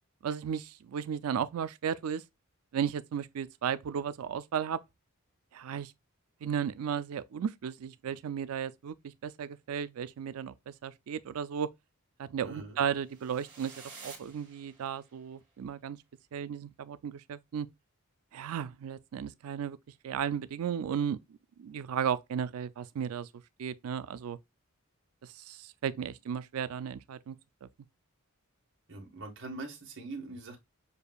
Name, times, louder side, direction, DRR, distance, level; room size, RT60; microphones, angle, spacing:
voice 1, 0.2-2.2 2.7-4.8 5.5-5.9 6.4-11.7 12.2-13.7 14.0-16.0 16.3-17.7 18.3-19.8 20.0-21.2 21.6-23.3 23.6-24.4 25.2-27.4 27.6-27.7, right 8 dB, 80° right, 0.4 m, -34 dB
voice 2, 12.4-12.8 28.9-30.6, right 2 dB, 55° right, 1.5 m, -42 dB
sound 1, 13.0-15.2, right 4 dB, 20° right, 1.9 m, -51 dB
6.7 x 2.6 x 2.2 m
head